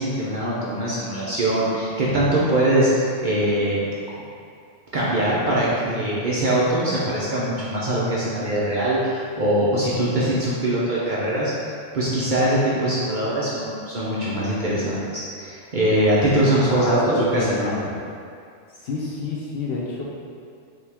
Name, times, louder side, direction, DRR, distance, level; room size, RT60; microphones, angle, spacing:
voice 1, 0.0-3.8 4.9-11.5 11.9-17.7, right 1 dB, 50° right, -7 dB, 0.6 m, -22 dB
voice 2, 16.7-17.9 18.8-20.0, left 3 dB, 60° left, -4 dB, 0.7 m, -28 dB
5.5 x 2.3 x 3.4 m, 2.3 s
omnidirectional pair, 1.3 m